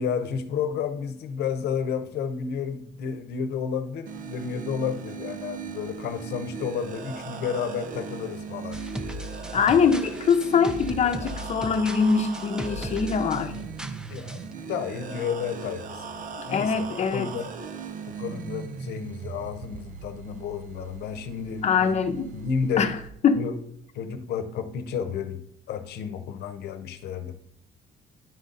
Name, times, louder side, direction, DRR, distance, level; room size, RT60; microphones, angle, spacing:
voice 1, 0.0-8.8 13.4-13.7 14.1-17.5 18.1-21.9 22.3-22.9 23.4-23.6 23.9-25.4 25.7-27.3, left 6 dB, 70° left, 9 dB, 0.8 m, -31 dB
sound 1, 4.1-23.1, right 6 dB, 50° right, 0.6 m, -39 dB
sound 2, 8.7-14.5, equal, 5° right, 0.5 m, -38 dB
voice 2, 9.5-13.5 16.5-17.3 21.6-22.3 22.8-22.9 23.2-23.4, left 6 dB, 40° left, 8 dB, 0.8 m, -23 dB
10.5 x 4.0 x 3.9 m, 0.71 s
cardioid pair, 110°, 17 cm